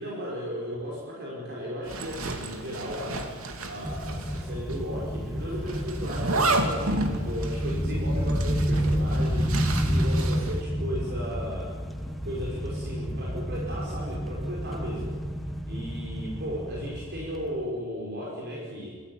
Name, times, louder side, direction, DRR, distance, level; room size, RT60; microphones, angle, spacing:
voice 1, 0.0-3.3 3.7-11.8 12.2-15.2 15.7-19.0, equal, 55° right, -4 dB, 5.6 m, -35 dB
Zipper (clothing), 1.9-4.4 4.7-4.8 5.7-10.6, right 2 dB, 90° right, 2.8 m, -31 dB
sound 1, 3.8-17.7, equal, ahead, 1.5 m, -30 dB
26.5 x 15.0 x 9.5 m, 1.5 s
head